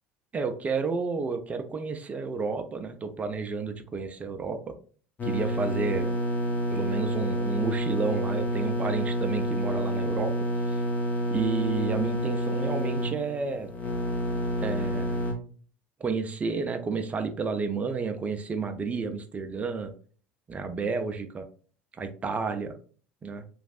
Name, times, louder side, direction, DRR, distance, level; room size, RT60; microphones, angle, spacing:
voice 1, 0.3-4.6 5.2-6.2 6.7-10.3 10.7-10.8 11.3-13.7 14.5-15.2 16.0-19.9 20.5-21.4 22.0-22.7 23.2-23.4, right 4 dB, 25° right, 8 dB, 0.5 m, -31 dB
sound 1, 5.2-15.3, equal, 30° left, 0.8 m, -29 dB
3.1 x 2.5 x 2.4 m, 0.42 s
figure-of-eight pair, 65°, 6 cm